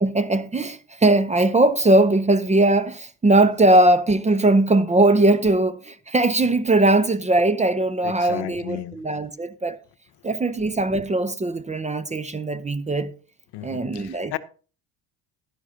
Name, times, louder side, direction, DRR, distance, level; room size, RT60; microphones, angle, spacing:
voice 1, 0.0-9.8 10.2-13.1 13.6-14.4, right 2 dB, 15° right, 0.6 m, -20 dB
voice 2, 8.0-9.0 13.5-14.4, left 14 dB, 65° left, 0.9 m, -33 dB
11.0 x 11.0 x 2.7 m
supercardioid pair, 80°, 44 cm